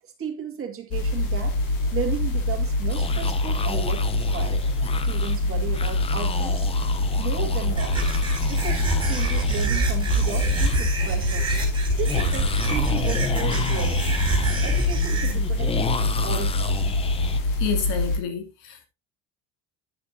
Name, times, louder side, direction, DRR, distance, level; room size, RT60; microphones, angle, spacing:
voice 1, 0.0-1.6 1.9-4.7 5.0-6.7 7.2-8.2 8.5-11.5 12.0-14.2 14.6-16.8, right 8 dB, 30° right, 2.1 m, -34 dB
sound 1, 0.9-18.2, left 2 dB, 50° left, 3.3 m, -25 dB
sound 2, 2.9-10.8 11.0-11.1 12.0-17.4, left 6 dB, 15° left, 0.4 m, -33 dB
sound 3, 7.7-15.3, right 3 dB, 10° right, 4.5 m, -27 dB
voice 2, 17.6-18.9, left 7 dB, 75° left, 2.8 m, -29 dB
11.0 x 9.8 x 2.8 m
cardioid pair, 165°, 43 cm